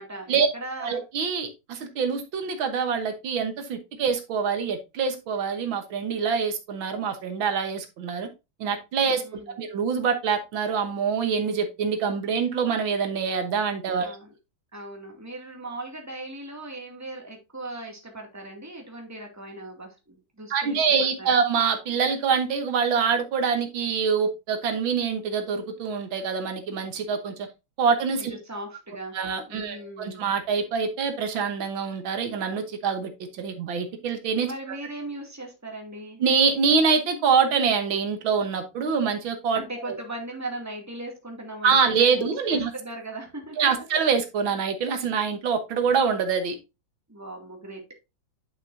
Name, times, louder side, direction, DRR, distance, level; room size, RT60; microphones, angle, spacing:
voice 1, 0.0-1.0 9.1-9.6 14.0-14.3 14.7-20.8 21.2-21.3 28.3-29.2 29.5-30.2 34.4-36.2 39.5-43.8 47.1-48.0, right 1 dB, 10° right, 2.2 m, -38 dB
voice 2, 0.8-8.3 8.6-14.2 20.5-27.3 27.8-28.4 29.1-34.5 36.2-39.6 39.9-40.0 41.6-42.7 43.6-46.6, right 6 dB, 80° right, 2.0 m, -25 dB
10.0 x 5.9 x 2.6 m
omnidirectional pair, 2.1 m